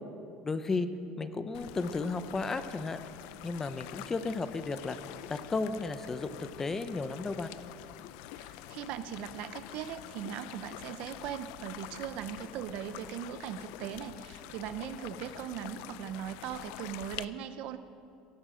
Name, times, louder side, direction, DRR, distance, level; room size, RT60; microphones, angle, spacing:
voice 1, 0.4-0.9 1.2-3.0 3.4-5.0 5.3-7.5, left 3 dB, 15° left, 10 dB, 0.7 m, -34 dB
sound 1, 1.5-17.3, left 14 dB, 80° left, 0.5 m, -46 dB
voice 2, 8.3-17.8, right 10 dB, 60° right, 12 dB, 0.8 m, -39 dB
17.0 x 15.5 x 5.1 m, 2.5 s
cardioid pair, 145°, 2 cm